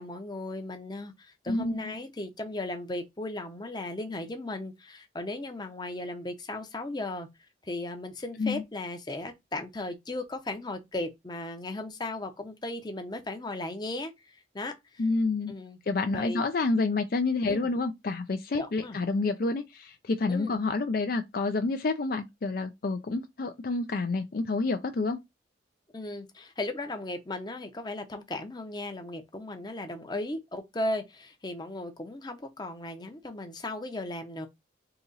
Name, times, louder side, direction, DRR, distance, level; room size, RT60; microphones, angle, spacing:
voice 1, 0.0-7.3 7.6-15.0 15.5-15.8 16.1-16.4 17.4-17.7 18.6-19.0 20.3-20.5 25.9-34.5, left 2 dB, 25° left, 0.7 m, -36 dB
voice 2, 1.5-1.9 8.4-8.6 15.0-15.5 15.9-25.2, left 3 dB, 50° left, 0.4 m, -28 dB
3.9 x 2.9 x 3.9 m
head